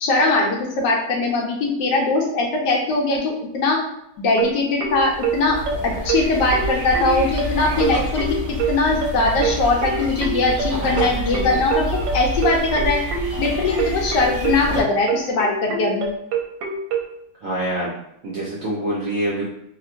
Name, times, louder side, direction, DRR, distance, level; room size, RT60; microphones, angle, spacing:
voice 1, 0.0-3.8 4.2-5.6 5.8-13.0 13.4-16.1, left 3 dB, 75° left, -1 dB, 1.2 m, -21 dB
sound 1, 4.4-17.1, right 6 dB, 90° right, 1.3 m, -25 dB
sound 2, 4.9-14.8, equal, 40° left, 1.0 m, -28 dB
voice 2, 17.4-17.9 18.2-19.4, right 1 dB, 65° right, -5 dB, 0.8 m, -25 dB
2.9 x 2.8 x 2.5 m, 0.77 s
omnidirectional pair, 2.0 m